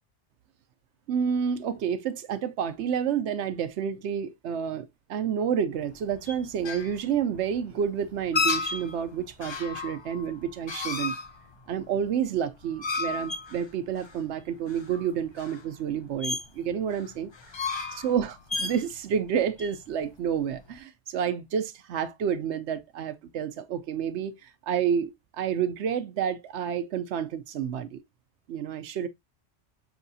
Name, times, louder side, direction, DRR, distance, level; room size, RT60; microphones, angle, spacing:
voice 1, 1.1-11.2 11.7-28.0 28.5-29.1, right 8 dB, 70° right, 0.9 m, -29 dB
sound 1, 5.8-20.7, left 4 dB, 35° left, 0.4 m, -34 dB
6.1 x 2.8 x 2.6 m
omnidirectional pair, 1.2 m